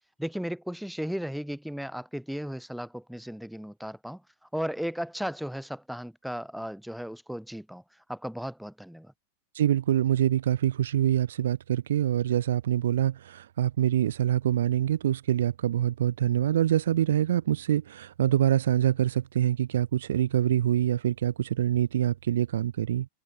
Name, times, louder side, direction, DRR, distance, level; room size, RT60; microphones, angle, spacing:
voice 1, 0.2-4.2 4.5-7.8 8.1-9.1, equal, ahead, 4.8 m, -35 dB
voice 2, 9.5-23.1, right 11 dB, 60° right, 3.9 m, -25 dB
figure-of-eight pair, 90°, 0 cm